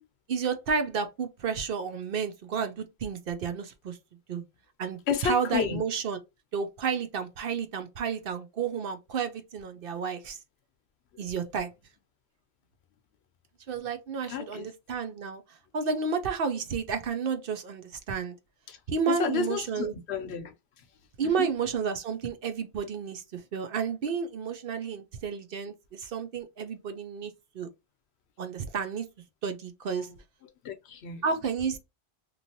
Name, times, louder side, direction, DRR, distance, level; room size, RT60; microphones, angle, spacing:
voice 1, 0.3-4.0 4.3-4.4 4.8-6.2 6.5-10.4 11.2-11.7 13.7-15.4 15.7-18.4 18.9-19.9 21.2-27.7 28.4-29.1 29.4-30.1 31.2-31.8, right 6 dB, 60° right, 0.7 m, -31 dB
voice 2, 5.1-5.8 14.3-14.7 18.7-18.8 19.1-20.8 21.2-21.5 29.9-30.1 30.6-31.2, left 6 dB, 75° left, 0.9 m, -32 dB
3.1 x 2.5 x 2.7 m
omnidirectional pair, 1.1 m